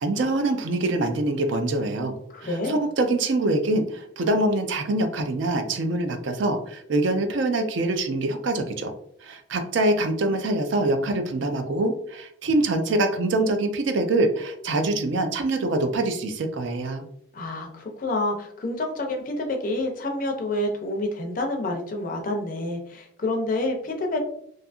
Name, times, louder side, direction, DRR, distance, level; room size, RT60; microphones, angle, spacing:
voice 1, 0.0-2.1 2.4-8.9 9.2-17.0, right 2 dB, 70° right, 6 dB, 0.4 m, -24 dB
voice 2, 2.3-2.8 17.3-24.2, left 2 dB, 40° left, 2 dB, 0.5 m, -28 dB
2.7 x 2.4 x 2.4 m, 0.67 s
head